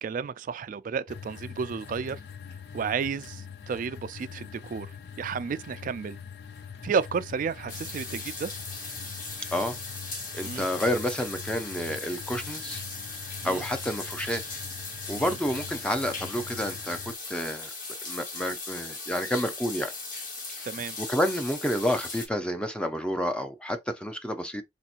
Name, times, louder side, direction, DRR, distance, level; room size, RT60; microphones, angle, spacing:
voice 1, 0.0-2.2 2.7-4.9 5.2-6.2 6.8-8.5 10.4-10.7 13.4-13.6 15.2-15.4 20.6-21.0, right 6 dB, 50° right, 0.3 m, -32 dB
sound 1, 1.1-17.1, left 7 dB, 65° left, 0.5 m, -43 dB
sound 2, 7.7-22.3, left 3 dB, 50° left, 1.3 m, -38 dB
voice 2, 10.3-12.8 13.4-14.4 15.1-17.7 18.1-19.9 20.5-20.6 21.0-24.6, equal, 5° left, 0.5 m, -29 dB
4.2 x 2.9 x 2.4 m
head